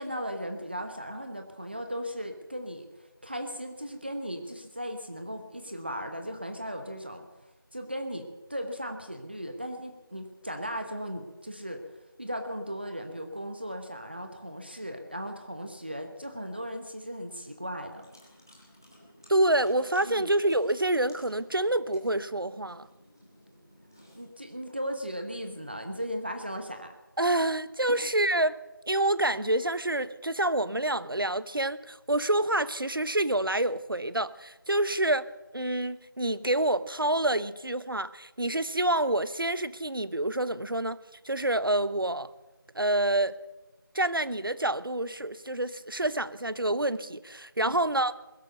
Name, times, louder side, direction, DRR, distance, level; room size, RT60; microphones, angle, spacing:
voice 1, 0.0-2.9 3.2-7.3 7.7-11.8 12.2-18.1 20.0-20.3 24.1-27.0 27.9-28.0 47.6-47.7, equal, 25° right, 1.0 m, -37 dB
sound 1, 17.9-24.3, equal, 10° left, 1.0 m, -56 dB
voice 2, 19.3-22.9 27.2-28.6 28.9-35.3 35.5-41.0 41.2-42.3 42.7-43.4 43.9-48.1, right 1 dB, 75° right, 0.9 m, -27 dB
21.0 x 8.5 x 6.7 m
figure-of-eight pair, 175°, 12 cm